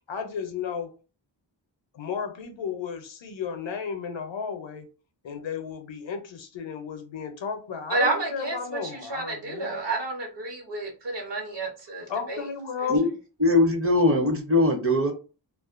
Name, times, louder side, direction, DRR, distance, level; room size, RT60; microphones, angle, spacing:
voice 1, 0.1-0.9 1.9-4.9 5.2-9.8 12.1-13.0, left 6 dB, 70° left, 0.6 m, -33 dB
voice 2, 7.9-12.5 12.8-12.9, right 3 dB, 65° right, 1.0 m, -30 dB
voice 3, 13.4-15.1, left 2 dB, 30° right, 0.6 m, -21 dB
2.4 x 2.1 x 2.4 m
wide cardioid pair, 65°, 47 cm